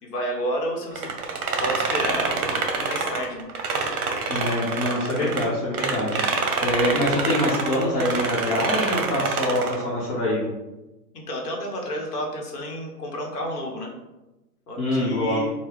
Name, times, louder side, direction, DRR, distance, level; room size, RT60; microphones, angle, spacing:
voice 1, 0.0-1.1 1.6-3.5 11.1-13.9 14.7-15.5, equal, 65° left, 0 dB, 1.1 m, -31 dB
sound 1, 1.0-5.5 5.7-9.8, right 4 dB, 60° right, 0.7 m, -26 dB
voice 2, 4.3-10.4 14.8-15.4, left 1 dB, 45° left, -8 dB, 1.1 m, -25 dB
3.7 x 2.3 x 3.0 m, 1.0 s
hypercardioid pair, 175°, 50 cm